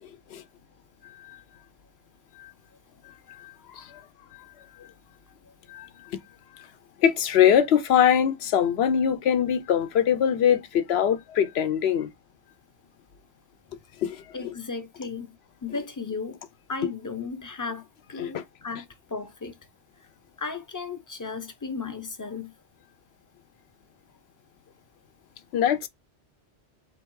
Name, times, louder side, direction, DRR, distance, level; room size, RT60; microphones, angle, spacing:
voice 1, 0.0-0.4 1.2-1.4 2.4-2.5 3.4-4.0 5.7-6.2 6.6-6.7 7.0-12.1 14.0-14.5 18.2-18.4 25.5-25.9, left 9 dB, 75° left, 0.8 m, -23 dB
voice 2, 14.3-15.3 15.6-16.4 16.7-19.6 20.4-22.5, left 4 dB, 25° left, 0.5 m, -35 dB
3.6 x 2.7 x 4.5 m
omnidirectional pair, 1.1 m